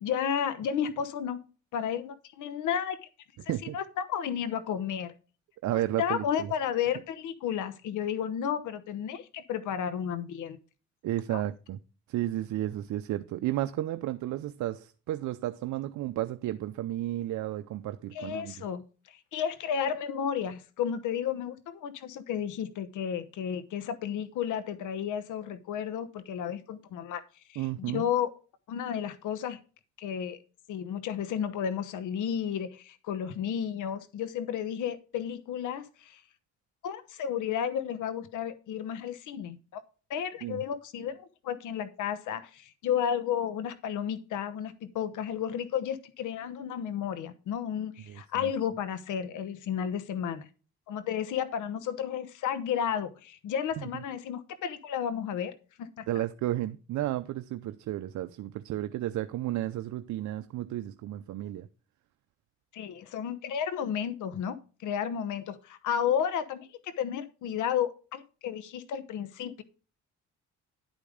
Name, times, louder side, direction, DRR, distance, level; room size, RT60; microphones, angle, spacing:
voice 1, 0.0-1.4 1.7-3.0 3.7-5.1 5.7-10.6 11.3-11.4 18.1-18.8 19.1-27.2 27.5-28.3 28.7-29.6 30.0-30.4 30.7-36.2 36.8-39.8 40.1-50.5 50.9-55.5 55.8-56.1 62.7-69.6, left 8 dB, 80° left, 1.0 m, -32 dB
voice 2, 3.4-3.8 5.6-6.5 11.0-11.8 12.1-18.6 27.6-28.0 40.4-40.6 48.1-48.5 53.8-53.9 56.1-61.7, right 14 dB, 70° right, 0.6 m, -33 dB
11.0 x 5.2 x 5.0 m
cardioid pair, 90°, 30 cm